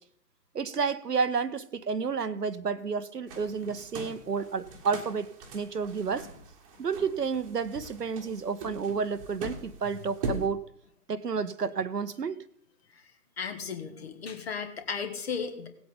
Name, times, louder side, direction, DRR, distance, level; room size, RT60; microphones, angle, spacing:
voice 1, 0.5-6.3 6.8-10.6 11.1-12.4, right 5 dB, 70° right, 13 dB, 0.9 m, -31 dB
sound 1, 3.3-10.5, right 2 dB, 20° right, 1.5 m, -41 dB
voice 2, 13.4-15.7, left 6 dB, 40° left, 7 dB, 1.6 m, -35 dB
18.0 x 8.0 x 3.8 m, 0.68 s
figure-of-eight pair, 135°, 50 cm